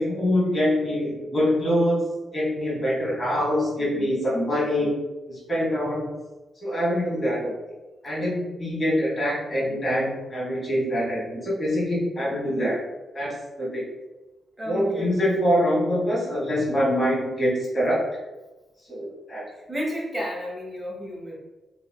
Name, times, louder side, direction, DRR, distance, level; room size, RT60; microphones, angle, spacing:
voice 1, 0.0-2.1 2.3-4.9 5.3-6.1 6.6-7.5 8.0-12.8 13.1-13.8 14.7-18.1 18.9-19.4, equal, 40° left, -5 dB, 1.4 m, -24 dB
voice 2, 14.6-15.2 19.7-21.4, equal, 20° right, -4 dB, 1.0 m, -32 dB
2.8 x 2.6 x 2.2 m, 1.1 s
hypercardioid pair, 40°, 0 cm